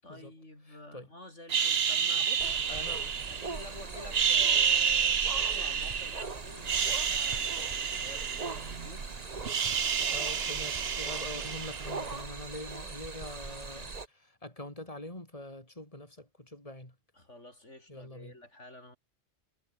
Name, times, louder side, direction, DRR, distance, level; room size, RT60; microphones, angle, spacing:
voice 1, 0.0-2.9 3.3-9.2 17.1-19.0, left 1 dB, 70° left, 7.6 m, -50 dB
voice 2, 0.7-1.1 2.7-3.0 10.1-16.9 17.9-18.3, left 1 dB, 25° left, 5.7 m, -44 dB
sound 1, 1.5-3.6 4.0-6.2 6.6-9.0 9.2-12.1, right 7 dB, 55° right, 1.3 m, -29 dB
sound 2, 2.4-14.1, right 4 dB, 30° right, 1.4 m, -41 dB
omnidirectional pair, 1.3 m